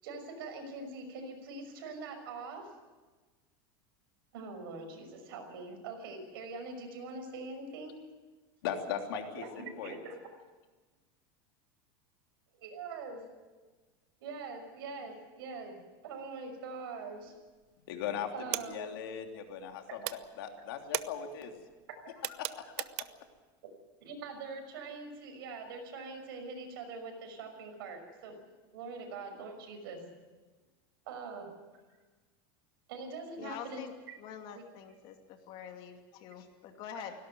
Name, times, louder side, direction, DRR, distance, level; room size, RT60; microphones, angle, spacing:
voice 1, 0.0-2.7 4.3-8.0 9.4-10.2 12.6-13.2 14.2-15.8 16.0-17.3 18.3-18.9 24.0-28.4 28.7-30.0 31.1-31.6 32.9-34.2 34.5-34.6 36.9-37.0, right 3 dB, 80° right, 5 dB, 6.0 m, -43 dB
voice 2, 8.6-10.0 17.9-21.6 22.3-22.9, left 8 dB, 80° left, 4 dB, 3.1 m, -39 dB
sound 1, 17.2-17.7 18.0-19.7 20.0-23.4, right 19 dB, 50° right, 0.7 m, -39 dB
voice 3, 33.4-33.9 34.2-37.1, left 8 dB, 45° left, 5 dB, 2.6 m, -46 dB
18.0 x 17.0 x 9.4 m, 1.3 s
supercardioid pair, 155°, 12 cm